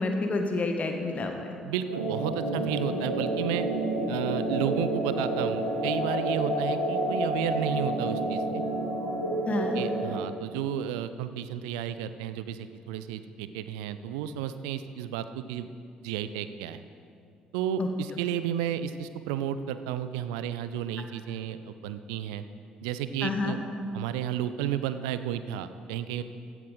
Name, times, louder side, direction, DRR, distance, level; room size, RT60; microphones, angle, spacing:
voice 1, 0.0-1.5 9.5-9.8 17.8-17.9 23.2-23.6, left 3 dB, 35° left, 4 dB, 1.5 m, -29 dB
voice 2, 1.6-3.7 4.1-8.6 9.6-15.7 16.0-16.8 17.5-22.4 22.8-23.6 23.9-26.2, right 10 dB, 65° right, 12 dB, 0.6 m, -32 dB
sound 1, 1.9-10.2, right 1 dB, 90° right, 1.6 m, -29 dB
16.0 x 11.0 x 3.9 m, 2.4 s
figure-of-eight pair, 45°, 4 cm